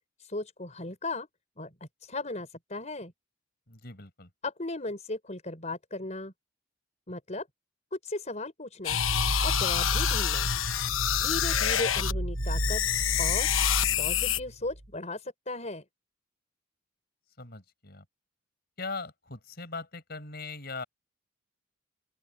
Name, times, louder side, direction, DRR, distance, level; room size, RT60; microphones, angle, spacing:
voice 1, 0.2-1.3 1.6-3.1 4.4-6.3 7.1-7.5 7.9-9.0 9.4-10.5 11.2-12.8 13.2-13.5 14.0-15.8, left 2 dB, 35° left, 5.1 m, -36 dB
voice 2, 3.7-4.3 17.4-18.0 18.8-20.8, left 3 dB, 50° left, 4.9 m, -40 dB
sound 1, 8.8-12.1 12.4-14.4, left 11 dB, 80° left, 1.0 m, -27 dB
sound 2, 8.9-14.9, right 1 dB, 80° right, 2.1 m, -32 dB
open air
head